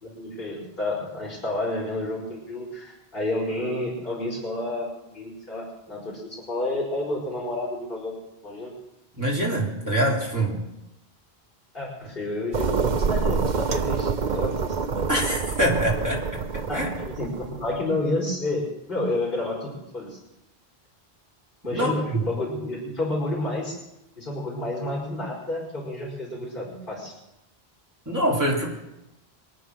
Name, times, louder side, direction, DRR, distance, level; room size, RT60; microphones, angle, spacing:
voice 1, 0.0-8.2 8.4-8.7 11.7-15.1 16.7-20.2 21.6-23.8 24.2-27.1, left 1 dB, 50° left, -4 dB, 5.3 m, -30 dB
voice 2, 9.2-10.6 15.1-16.9 21.7-22.3 28.1-28.7, right 1 dB, 15° right, -3 dB, 3.5 m, -25 dB
sound 1, 12.5-17.8, right 5 dB, 50° right, 0.8 m, -27 dB
24.0 x 9.2 x 6.4 m, 0.91 s
omnidirectional pair, 1.1 m